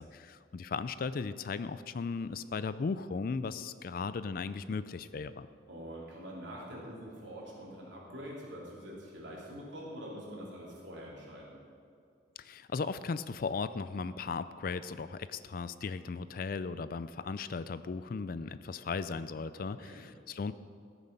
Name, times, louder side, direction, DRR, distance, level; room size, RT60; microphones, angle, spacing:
voice 1, 0.0-5.5 12.4-20.5, left 4 dB, 50° left, 14 dB, 0.4 m, -37 dB
voice 2, 5.7-11.6 19.5-20.1, equal, 75° right, -4 dB, 3.2 m, -45 dB
14.0 x 7.2 x 5.3 m, 2.4 s
head